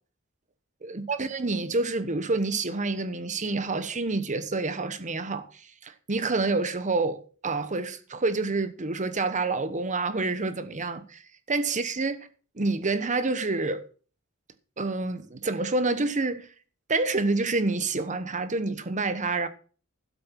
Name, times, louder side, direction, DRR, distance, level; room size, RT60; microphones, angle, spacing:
voice 1, 0.8-11.2 11.5-12.3 12.6-13.8 14.8-16.5 16.9-19.5, right 3 dB, 35° right, 1.1 m, -28 dB
12.0 x 8.2 x 5.9 m
head